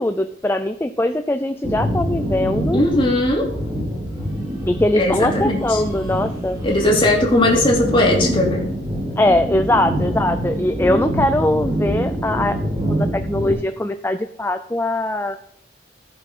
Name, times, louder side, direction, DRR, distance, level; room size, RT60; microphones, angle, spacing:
voice 1, 0.0-2.8 4.7-6.6 9.2-12.6 12.9-15.4, left 1 dB, 10° left, 9 dB, 0.4 m, -21 dB
sound 1, 1.6-13.5, equal, 20° right, 4.3 m, -25 dB
voice 2, 2.7-3.5 4.9-5.8 6.6-8.6, left 1 dB, 30° left, -2 dB, 2.8 m, -18 dB
15.0 x 6.8 x 4.3 m, 0.73 s
head